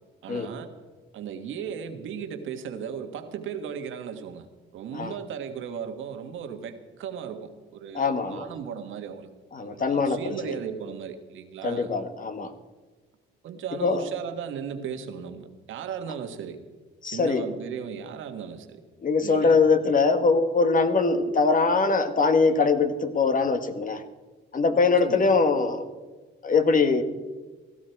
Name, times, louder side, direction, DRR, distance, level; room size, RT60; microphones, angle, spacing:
voice 1, 0.2-0.7 1.1-4.5 4.7-9.3 9.6-11.9 13.4-16.6 17.0-18.8 19.2-19.6 25.0-25.3, right 7 dB, 80° right, 7 dB, 1.6 m, -36 dB
voice 2, 7.9-8.5 9.5-10.5 11.6-12.5 13.8-14.0 17.0-17.4 19.0-24.0 24.5-25.8 26.4-27.0, left 4 dB, 45° left, 9 dB, 1.6 m, -22 dB
16.5 x 15.0 x 4.6 m, 1.3 s
cardioid pair, 90°, 20 cm